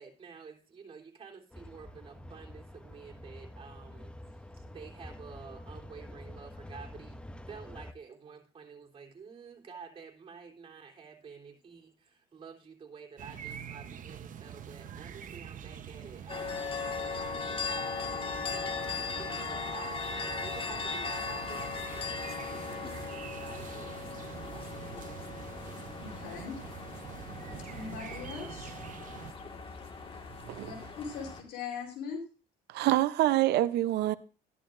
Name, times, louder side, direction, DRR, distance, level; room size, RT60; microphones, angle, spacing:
voice 1, 0.0-24.8, right 5 dB, 35° right, 3.6 m, -50 dB
sound 1, 1.5-7.9, left 1 dB, 5° left, 0.8 m, -47 dB
sound 2, 13.2-29.3, right 8 dB, 50° right, 0.9 m, -45 dB
sound 3, 16.3-31.4, left 4 dB, 30° left, 1.8 m, -38 dB
voice 2, 26.0-26.6 27.6-28.7 30.6-32.2, left 6 dB, 75° left, 3.9 m, -40 dB
voice 3, 32.7-34.1, right 15 dB, 75° right, 0.7 m, -26 dB
13.5 x 11.5 x 2.6 m
cardioid pair, 110°, 17 cm